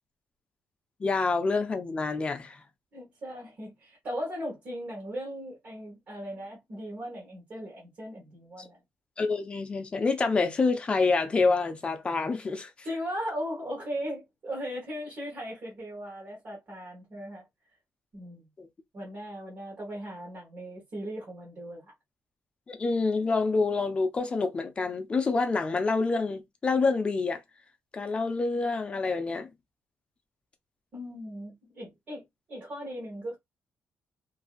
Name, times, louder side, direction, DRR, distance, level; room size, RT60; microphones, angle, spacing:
voice 1, 1.0-2.6 8.6-8.7 9.2-12.7 18.6-18.7 22.7-27.4 27.9-29.5, left 4 dB, 25° left, 0.5 m, -27 dB
voice 2, 2.9-8.8 12.8-17.4 18.1-18.5 18.9-21.9 30.9-33.4, equal, 40° right, 1.3 m, -38 dB
2.8 x 2.6 x 2.4 m
cardioid pair, 170°, 5 cm